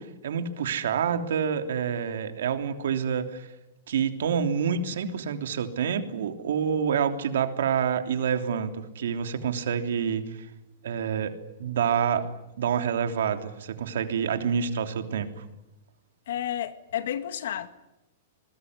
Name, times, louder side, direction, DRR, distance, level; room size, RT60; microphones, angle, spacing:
voice 1, 0.0-3.5 3.9-10.5 10.8-12.3 12.6-15.4, right 7 dB, 75° right, 7 dB, 3.3 m, -27 dB
voice 2, 16.3-17.7, left 10 dB, 70° left, 10 dB, 2.1 m, -31 dB
28.0 x 21.0 x 9.7 m, 0.91 s
supercardioid pair, 175°, 0 cm